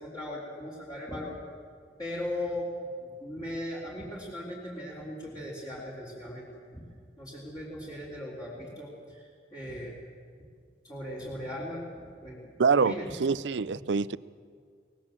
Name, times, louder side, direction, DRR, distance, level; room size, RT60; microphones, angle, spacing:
voice 1, 0.0-1.4 2.0-2.7 3.0-6.9 7.2-9.9 10.8-12.4 12.7-13.4, left 1 dB, 20° left, -6 dB, 3.8 m, -38 dB
voice 2, 12.6-12.9 13.2-14.2, right 5 dB, 80° right, 18 dB, 0.5 m, -25 dB
23.5 x 19.5 x 7.4 m, 2.1 s
head